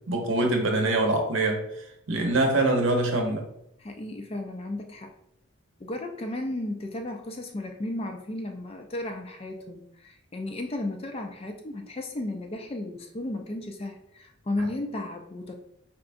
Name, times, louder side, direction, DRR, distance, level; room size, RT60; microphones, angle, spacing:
voice 1, 0.0-3.4 14.6-14.7, right 2 dB, 60° right, 2 dB, 0.8 m, -24 dB
voice 2, 3.8-5.1 5.8-15.6, left 1 dB, 25° left, 5 dB, 0.4 m, -34 dB
4.9 x 3.3 x 2.6 m, 0.77 s
head